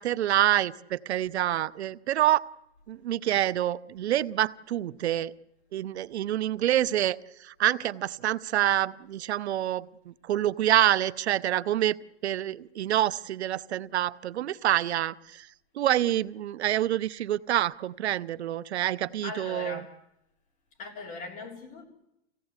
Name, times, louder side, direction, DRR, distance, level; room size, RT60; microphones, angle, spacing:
voice 1, 0.0-2.4 2.9-5.3 5.7-7.2 7.4-12.0 12.2-15.5 15.8-19.8, right 12 dB, 80° right, 17 dB, 0.8 m, -27 dB
voice 2, 19.2-20.0 20.8-21.8, left 3 dB, 25° left, 2 dB, 3.4 m, -39 dB
25.0 x 16.5 x 8.1 m, 0.85 s
supercardioid pair, 160°, 32 cm